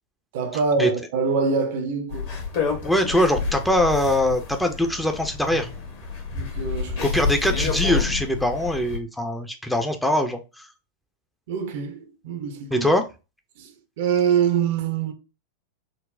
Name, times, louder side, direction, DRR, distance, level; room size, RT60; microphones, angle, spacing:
voice 1, 0.3-2.4 6.3-7.2 11.5-12.9 13.6-15.1, right 6 dB, 50° right, 0.5 m, -25 dB
sound 1, 2.1-9.0, left 5 dB, 50° left, 1.0 m, -29 dB
voice 2, 2.8-5.7 7.0-10.4 12.7-13.0, left 1 dB, 5° left, 0.4 m, -22 dB
3.9 x 2.0 x 2.5 m
figure-of-eight pair, 90°, 0 cm